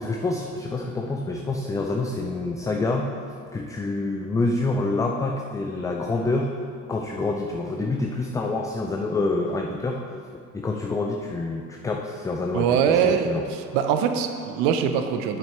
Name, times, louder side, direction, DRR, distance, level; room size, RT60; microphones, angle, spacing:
voice 1, 0.0-6.5 6.9-10.2 10.5-13.4, left 2 dB, 10° left, 1 dB, 0.3 m, -27 dB
voice 2, 12.5-13.3 13.7-15.4, right 8 dB, 60° right, 7 dB, 0.8 m, -22 dB
8.8 x 8.5 x 3.2 m, 2.2 s
hypercardioid pair, 70°, 46 cm